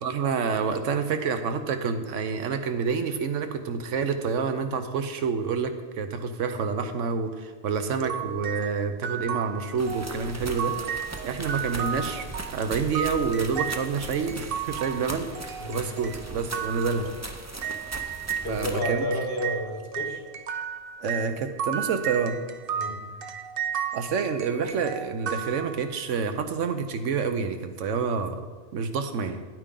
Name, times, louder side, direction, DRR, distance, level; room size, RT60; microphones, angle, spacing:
voice 1, 0.0-10.8 11.2-15.3 15.7-17.1 18.5-19.1 21.0-22.4 23.9-28.4 28.7-29.5, right 5 dB, 70° right, 8 dB, 1.0 m, -28 dB
sound 1, 8.0-18.5 18.8-26.2, right 8 dB, 55° right, 0.7 m, -34 dB
sound 2, 9.8-18.8, right 2 dB, 25° right, 0.3 m, -39 dB
voice 2, 18.4-20.2 22.7-23.0, left 1 dB, 50° left, 2 dB, 1.5 m, -31 dB
10.0 x 9.1 x 3.8 m, 1.4 s
omnidirectional pair, 1.3 m